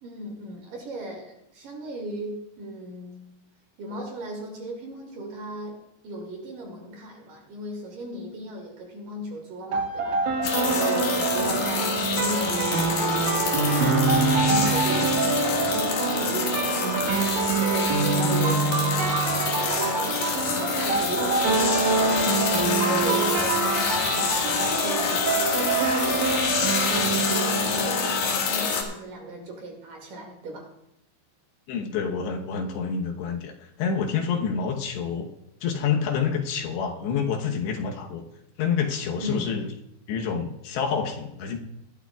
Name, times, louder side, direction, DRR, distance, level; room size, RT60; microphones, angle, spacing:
voice 1, 0.0-3.3 3.8-5.8 6.0-12.5 13.0-15.8 16.1-18.7 19.1-22.5 22.8-26.4 26.8-30.6 39.2-39.6, right 2 dB, 55° right, 0 dB, 3.2 m, -36 dB
sound 1, 9.7-28.7, right 4 dB, 80° right, 4.0 m, -25 dB
sound 2, 10.4-28.8, left 5 dB, 60° left, 3.1 m, -27 dB
voice 2, 31.7-35.3 35.6-38.2 38.6-39.7 40.1-41.6, left 6 dB, 75° left, 2 dB, 3.2 m, -28 dB
20.5 x 12.5 x 2.3 m, 0.81 s
omnidirectional pair, 5.2 m